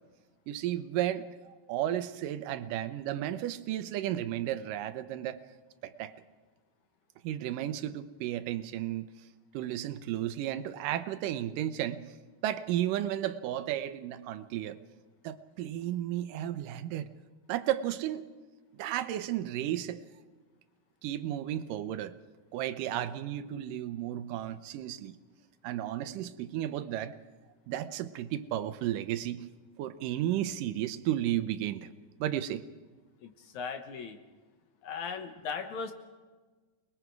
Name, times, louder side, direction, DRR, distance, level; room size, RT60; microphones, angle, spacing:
voice 1, 0.5-5.4 5.8-6.1 7.2-9.1 9.5-12.0 12.4-14.8 15.2-17.1 17.5-18.3 18.7-20.0 21.0-22.2 22.5-25.2 25.6-27.1 27.7-29.5 29.8-31.9 32.2-32.6, right 12 dB, 80° right, 11 dB, 2.4 m, -33 dB
voice 2, 33.2-34.2 34.8-35.9, left 5 dB, 65° left, 6 dB, 2.4 m, -38 dB
29.0 x 20.5 x 4.7 m, 1.3 s
omnidirectional pair, 3.8 m